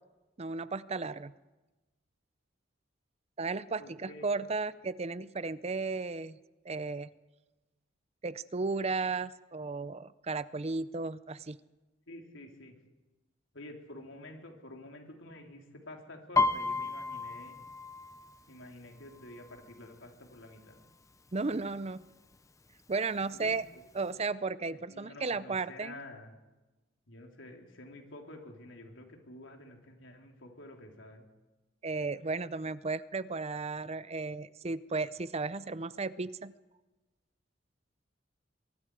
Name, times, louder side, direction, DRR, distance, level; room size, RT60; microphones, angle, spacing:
voice 1, 0.4-1.3 3.4-6.4 6.6-7.1 8.2-11.6 21.3-22.0 22.9-23.6 23.9-26.0 31.8-36.5, right 3 dB, 35° right, 16 dB, 0.6 m, -34 dB
voice 2, 3.8-4.3 12.1-12.7 13.5-17.6 18.5-20.8 23.3-23.8 24.7-26.3 27.1-31.2, left 1 dB, 85° left, 2 dB, 3.8 m, -49 dB
Piano, 16.4-20.0 20.4-20.8 21.1-21.7 22.3-22.4 22.7-23.7 24.1-24.2, left 3 dB, 15° left, 0.6 m, -33 dB
23.5 x 23.5 x 4.9 m, 1.1 s
head